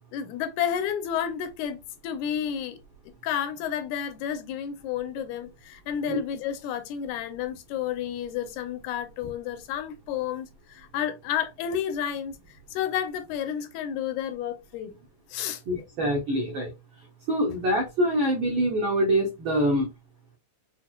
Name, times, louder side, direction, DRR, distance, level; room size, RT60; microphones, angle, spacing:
voice 1, 0.1-2.8 3.2-14.9 15.3-15.6, left 9 dB, 85° left, 2.0 m, -31 dB
voice 2, 15.7-16.7 17.0-19.9, equal, 85° right, 1.1 m, -25 dB
5.9 x 2.1 x 2.2 m
omnidirectional pair, 3.5 m